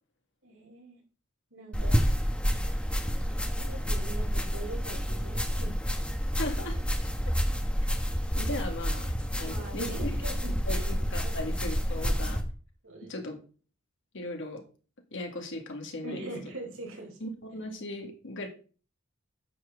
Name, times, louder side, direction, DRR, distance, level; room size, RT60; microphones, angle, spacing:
voice 1, 0.4-1.0 1.5-2.1 3.6-6.0 9.4-10.9 11.2-11.5 12.0-12.2 12.8-13.2 16.0-17.3, right 2 dB, 70° right, 0 dB, 4.2 m, -42 dB
sound 1, 1.7-12.4, equal, 5° left, 1.1 m, -29 dB
voice 2, 6.4-6.8 8.3-10.1 10.7-12.4 13.1-13.4 14.1-14.6 15.1-16.3 17.2-18.5, left 1 dB, 65° left, 3 dB, 2.1 m, -37 dB
9.9 x 7.4 x 3.8 m, 0.38 s
head